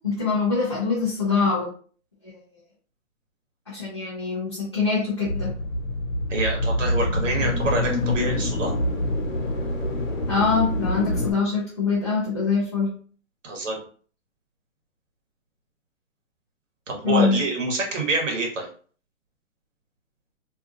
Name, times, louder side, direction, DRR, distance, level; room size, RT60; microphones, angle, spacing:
voice 1, 0.0-1.7 3.7-5.5 10.3-12.9 17.0-17.4, left 5 dB, 25° left, -7 dB, 0.3 m, -24 dB
sound 1, 5.3-11.3, left 1 dB, 80° left, 1.0 m, -26 dB
voice 2, 6.3-8.7 13.4-13.8 16.9-18.7, right 2 dB, 70° right, 1 dB, 1.2 m, -26 dB
2.6 x 2.5 x 2.4 m, 0.44 s
hypercardioid pair, 150°, 39 cm